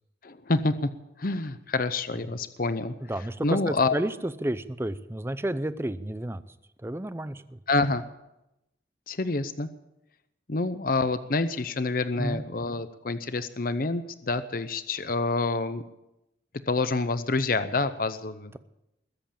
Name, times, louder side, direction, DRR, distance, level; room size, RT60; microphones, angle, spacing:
voice 1, 0.2-0.9 1.2-2.9 3.4-3.9 7.7-8.0 9.1-9.7 10.5-15.8 16.7-18.5, left 3 dB, 50° left, 12 dB, 0.7 m, -27 dB
voice 2, 3.1-6.4 6.8-7.6 12.2-12.4, right 1 dB, 15° right, 14 dB, 0.6 m, -31 dB
21.0 x 7.9 x 8.7 m, 0.90 s
head